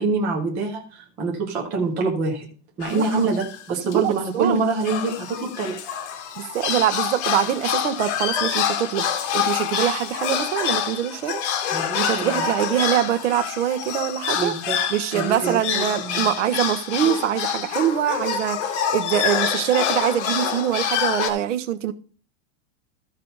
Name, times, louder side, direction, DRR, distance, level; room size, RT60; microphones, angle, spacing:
voice 1, 0.0-2.5 2.8-5.8 11.7-12.5 14.3-14.8 15.1-16.3, right 3 dB, 5° right, 0.3 m, -25 dB
sound 1, 2.8-3.6 3.9-4.0 4.3-4.4 4.8-21.3, left 8 dB, 60° left, 1.7 m, -26 dB
voice 2, 2.9-3.2 3.9-4.6 6.4-11.4 12.0-14.5 14.9-21.9, right 11 dB, 70° right, 1.1 m, -24 dB
14.0 x 5.4 x 4.0 m
supercardioid pair, 180°, 38 cm